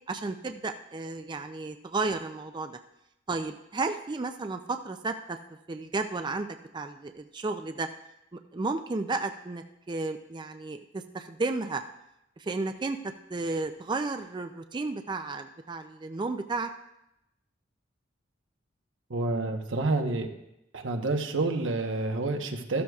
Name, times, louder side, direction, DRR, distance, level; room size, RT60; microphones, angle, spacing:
voice 1, 0.1-2.8 3.3-5.4 5.7-6.5 6.7-7.9 8.3-11.8 12.4-13.0 13.3-16.7, right 3 dB, 25° right, 7 dB, 0.4 m, -33 dB
voice 2, 19.1-20.3 20.7-22.8, right 2 dB, 90° right, 4 dB, 1.1 m, -28 dB
14.0 x 12.5 x 2.4 m, 0.85 s
head